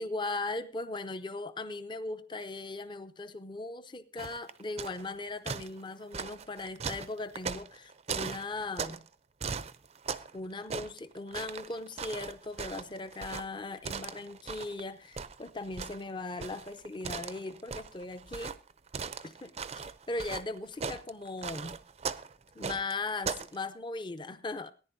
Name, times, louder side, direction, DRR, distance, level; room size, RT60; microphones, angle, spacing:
voice 1, 0.0-9.0 10.3-18.6 19.2-21.8 22.5-24.7, left 2 dB, 25° left, 11 dB, 0.6 m, -38 dB
sound 1, 4.2-5.1 5.5-9.1 9.4-10.4 10.6-14.8 15.2-23.6, right 5 dB, 35° right, 0.5 m, -38 dB
18.0 x 10.5 x 2.7 m, 0.33 s
head